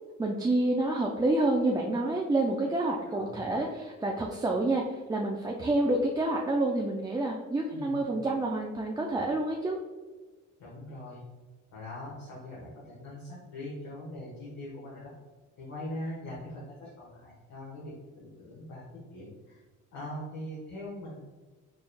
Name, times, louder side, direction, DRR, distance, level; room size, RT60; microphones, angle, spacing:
voice 1, 0.2-9.8, right 2 dB, 15° right, -1 dB, 0.4 m, -28 dB
voice 2, 3.1-3.5 7.7-8.0 10.6-11.2 11.7-15.1 15.6-18.8 19.1-19.6 19.9-21.3, left 1 dB, 65° left, -7 dB, 1.3 m, -42 dB
4.7 x 3.1 x 2.2 m, 1.3 s
cardioid pair, 90°, 30 cm